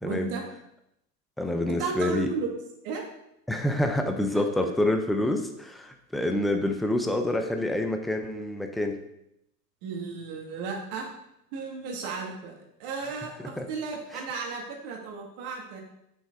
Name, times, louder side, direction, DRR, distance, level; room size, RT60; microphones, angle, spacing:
voice 1, 0.0-0.5 1.7-2.6 2.8-3.1 4.3-4.9 9.8-11.1 11.5-12.5 12.8-15.8, right 4 dB, 50° right, 1 dB, 1.8 m, -34 dB
voice 2, 1.4-2.3 3.5-9.0 13.6-13.7, left 1 dB, ahead, 5 dB, 0.6 m, -27 dB
7.1 x 5.9 x 3.6 m, 0.81 s
hypercardioid pair, 95°, 49 cm